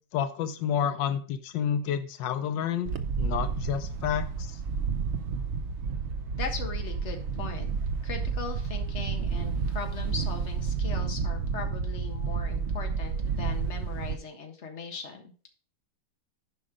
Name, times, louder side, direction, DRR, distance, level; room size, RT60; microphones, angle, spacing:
voice 1, 0.0-2.9 3.2-4.6, left 8 dB, 90° left, 10 dB, 1.5 m, -30 dB
Wind, 2.8-14.2, right 5 dB, 60° right, 0.7 m, -31 dB
voice 2, 6.3-7.7 8.0-15.3, left 5 dB, 40° left, 3 dB, 1.7 m, -39 dB
9.9 x 5.4 x 5.0 m, 0.39 s
omnidirectional pair, 1.9 m